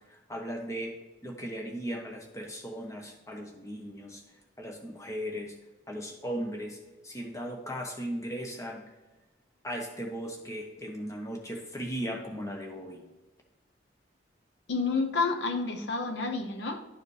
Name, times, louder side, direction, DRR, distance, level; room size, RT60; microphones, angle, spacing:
voice 1, 0.1-0.9 1.2-4.2 4.6-5.5 5.9-8.8 9.6-13.0, equal, 15° left, 1 dB, 0.9 m, -37 dB
voice 2, 14.7-16.8, left 4 dB, 65° left, 6 dB, 0.7 m, -29 dB
10.5 x 4.8 x 3.2 m, 1.1 s
head